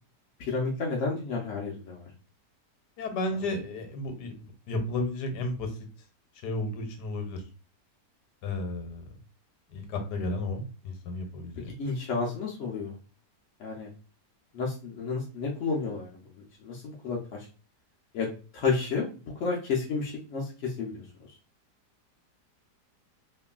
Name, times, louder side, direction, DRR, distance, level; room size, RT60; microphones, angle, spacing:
voice 1, 0.4-2.1 11.8-13.0 13.6-13.9 14.5-17.5 18.1-18.3 18.5-21.0, left 4 dB, 70° left, -2 dB, 0.7 m, -31 dB
voice 2, 3.0-5.7 6.4-7.4 8.4-9.0 9.7-11.8, left 2 dB, 85° left, 5 dB, 1.2 m, -33 dB
2.9 x 2.5 x 2.3 m, 0.36 s
omnidirectional pair, 1.8 m